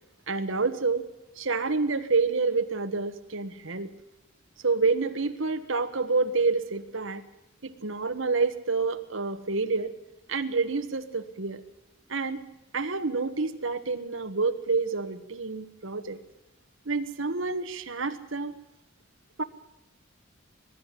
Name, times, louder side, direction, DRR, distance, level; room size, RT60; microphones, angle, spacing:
voice 1, 0.3-1.1 1.4-3.9 4.6-7.2 7.6-9.9 10.3-11.6 12.1-12.4 12.7-16.2 16.8-18.5 19.4-19.5, right 4 dB, 75° right, 8 dB, 1.4 m, -28 dB
22.5 x 12.0 x 10.0 m, 0.93 s
head